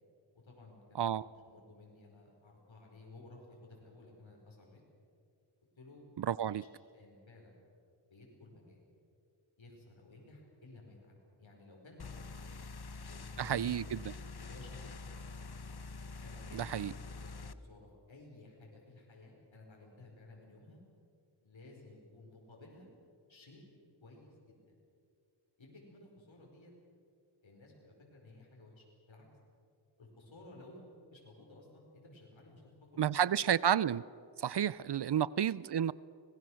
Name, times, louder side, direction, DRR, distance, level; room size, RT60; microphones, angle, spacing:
voice 1, 0.3-4.8 5.8-6.0 6.3-6.4 6.9-7.6 8.1-8.8 9.6-12.3 13.1-13.7 14.5-15.1 16.2-20.8 21.4-22.9 23.3-23.6 24.0-24.6 25.6-26.7 27.4-29.3 30.0-33.2 34.7-34.8, left 2 dB, 85° left, -1 dB, 4.9 m, -56 dB
voice 2, 0.9-1.3 6.2-6.6 13.4-14.1 16.5-16.9 33.0-34.0 34.4-35.9, right 9 dB, 60° right, 20 dB, 0.6 m, -31 dB
sound 1, 12.0-17.5, left 3 dB, 55° left, 1.1 m, -46 dB
25.0 x 20.0 x 6.4 m, 2.4 s
cardioid pair, 45°, 45 cm